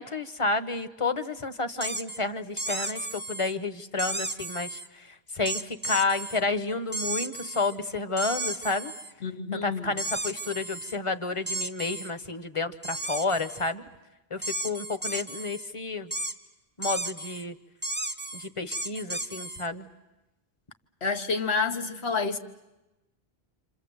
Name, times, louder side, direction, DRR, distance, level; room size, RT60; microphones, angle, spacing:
voice 1, 0.0-5.1 5.3-8.9 9.5-13.8 14.3-16.1 16.8-17.5 18.3-19.9, left 3 dB, 30° left, 1.0 m, -30 dB
sound 1, 1.8-2.2 2.6-3.5 4.0-4.9 5.4-6.4 6.9-7.8 8.2-9.1 10.0-11.0 11.5-12.1 12.8-13.7 14.4-15.7 16.1-16.3 16.8-17.4 17.8-19.7, right 2 dB, 10° right, 0.8 m, -34 dB
voice 2, 9.2-10.0 21.0-22.4, left 4 dB, 80° left, 1.5 m, -29 dB
27.0 x 27.0 x 8.0 m
omnidirectional pair, 1.1 m